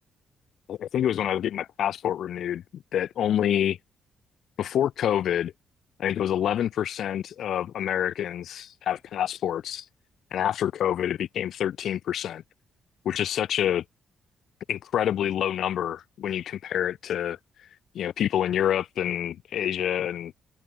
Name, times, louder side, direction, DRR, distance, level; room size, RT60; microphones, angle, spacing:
voice 1, 0.7-3.8 4.6-5.5 6.0-9.9 10.3-12.4 13.0-13.8 14.7-17.4 17.9-20.3, left 10 dB, 70° left, 0.4 m, -27 dB
cardioid pair, 90°, 0 cm